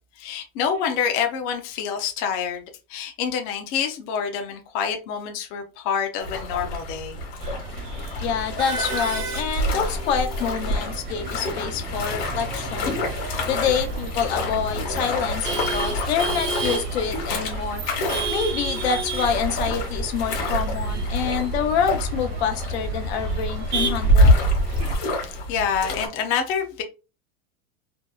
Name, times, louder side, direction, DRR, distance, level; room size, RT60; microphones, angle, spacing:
voice 1, 0.2-2.6 2.9-7.2 25.1-26.8, left 7 dB, 40° left, 0.4 m, -27 dB
sound 1, 6.2-26.1, left 2 dB, 65° left, 1.1 m, -31 dB
Male speech man speaking / Laughter / Chatter, 7.4-25.0, right 1 dB, 50° right, 0.8 m, -26 dB
voice 2, 8.2-13.0 13.5-17.8 18.3-24.4, left 7 dB, 85° left, 0.7 m, -27 dB
2.7 x 2.0 x 2.2 m
supercardioid pair, 170°, 31 cm